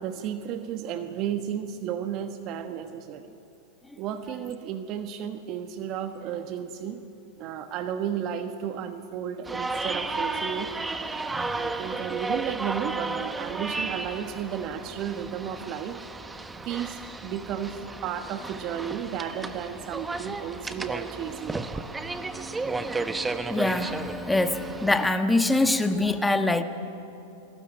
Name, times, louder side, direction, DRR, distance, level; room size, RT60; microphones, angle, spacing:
voice 1, 0.0-3.3 4.0-7.0 7.4-10.7 11.5-16.0 16.6-21.8, right 9 dB, 45° right, 8 dB, 1.2 m, -33 dB
sound 1, 9.4-25.1, right 3 dB, 10° right, 1.2 m, -33 dB
voice 2, 23.5-26.6, left 2 dB, 5° left, 7 dB, 1.5 m, -24 dB
24.0 x 19.0 x 9.0 m, 2.8 s
hypercardioid pair, 110°, 0 cm